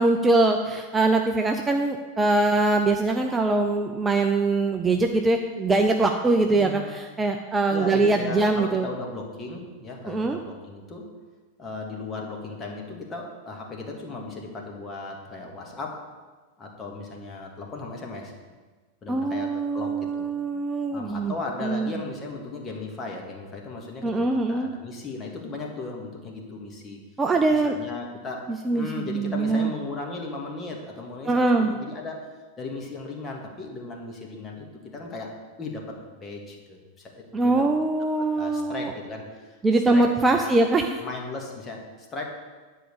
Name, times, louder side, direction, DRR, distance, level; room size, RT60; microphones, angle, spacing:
voice 1, 0.0-8.9 10.1-10.4 19.1-21.3 21.6-22.0 24.0-24.7 27.2-27.7 28.6-29.7 31.3-31.7 37.3-38.9 39.6-41.0, right 2 dB, 15° right, 4 dB, 0.6 m, -23 dB
voice 2, 6.5-6.9 7.7-11.1 11.6-16.0 16.6-18.3 19.0-20.4 20.9-27.0 27.5-32.3 32.6-37.7 38.0-39.6 39.9-40.5 41.0-42.2, left 3 dB, 20° left, 0 dB, 1.8 m, -36 dB
10.0 x 4.8 x 6.8 m, 1.3 s
figure-of-eight pair, 90°, 0 cm